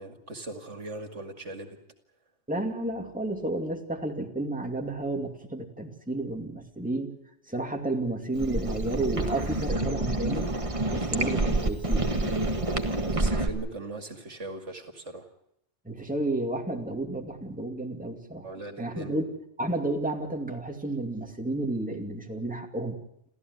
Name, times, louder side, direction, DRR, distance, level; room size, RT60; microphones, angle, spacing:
voice 1, 0.0-1.8 13.2-15.3 18.4-19.2, right 2 dB, 75° right, 6 dB, 2.7 m, -39 dB
voice 2, 2.5-7.1 7.5-10.6 10.9-12.5 15.8-18.5 18.8-19.3 19.6-23.0, right 2 dB, 5° right, 2 dB, 2.4 m, -31 dB
sound 1, 8.3-13.5, right 2 dB, 25° right, 1.8 m, -28 dB
29.0 x 14.5 x 9.6 m, 0.80 s
omnidirectional pair, 1.2 m